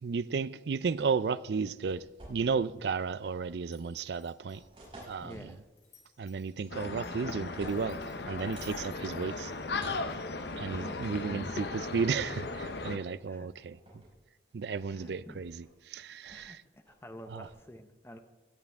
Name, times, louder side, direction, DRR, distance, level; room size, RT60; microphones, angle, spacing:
voice 1, 0.0-4.6 5.0-5.6 6.2-9.5 10.6-13.8 14.5-16.6 17.3-17.5, right 5 dB, 65° right, 0.4 m, -33 dB
sound 1, 0.8-2.7 3.0-3.6 4.2-5.6 6.6-7.0 7.3-8.8 9.8-10.1 11.4-11.6 11.9-12.2 13.1-13.3 13.6-14.1 14.5-15.7 16.3-16.5 16.9-17.6, right 1 dB, 30° right, 5.4 m, -52 dB
Glass, 3.7-10.1, left 8 dB, 45° left, 3.4 m, -60 dB
voice 2, 5.2-5.6 10.7-11.2 12.9-13.5 14.9-15.4 16.3-18.2, equal, 15° left, 0.9 m, -49 dB
sound 2, 6.7-13.0, left 3 dB, 65° left, 0.8 m, -37 dB
17.0 x 12.0 x 3.5 m
head